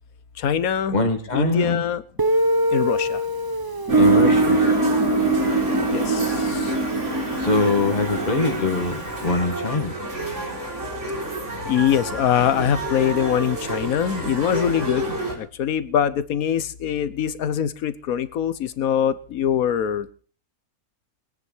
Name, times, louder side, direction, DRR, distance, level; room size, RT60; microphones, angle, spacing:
voice 1, 0.4-1.0 1.3-2.0 2.7-3.2 5.9-6.7 11.7-15.0 15.3-20.1, left 9 dB, 80° left, 15 dB, 1.4 m, -23 dB
voice 2, 0.9-1.8 4.0-4.6 7.4-9.9, left 3 dB, 30° left, 6 dB, 2.0 m, -23 dB
Guitar, 2.2-8.8, right 2 dB, 20° right, 0.7 m, -23 dB
sound 1, 3.9-15.3, right 1 dB, 55° right, 3.9 m, -30 dB
sound 2, 3.9-8.9, right 2 dB, 80° right, 3.0 m, -26 dB
21.0 x 9.7 x 4.5 m, 0.41 s
omnidirectional pair, 1.5 m